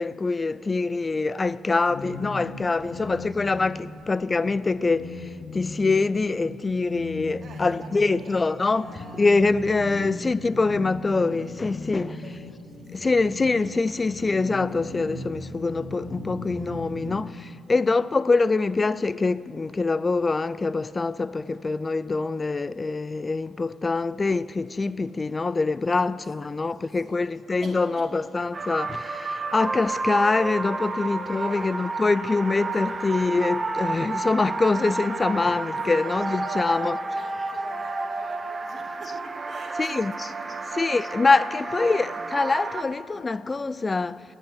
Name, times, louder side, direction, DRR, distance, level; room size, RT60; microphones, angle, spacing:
voice 1, 0.0-8.9 9.1-12.2 12.9-37.0 39.8-40.3 40.7-44.2, left 3 dB, 25° left, 0.3 m, -24 dB
sound 1, 1.9-17.3, left 2 dB, 70° left, 2.8 m, -38 dB
voice 2, 2.9-3.3 7.4-9.3 10.0-10.1 11.8-12.5 12.7-13.1 16.8-17.2 25.9-26.1 26.4-27.2 27.6-28.1 31.4-31.8 32.7-33.1 35.9-41.1 41.5-42.1, right 3 dB, 50° right, 2.2 m, -47 dB
sound 2, 28.5-42.8, right 3 dB, 35° right, 0.8 m, -31 dB
16.0 x 6.0 x 9.5 m
cardioid pair, 90°, 0 cm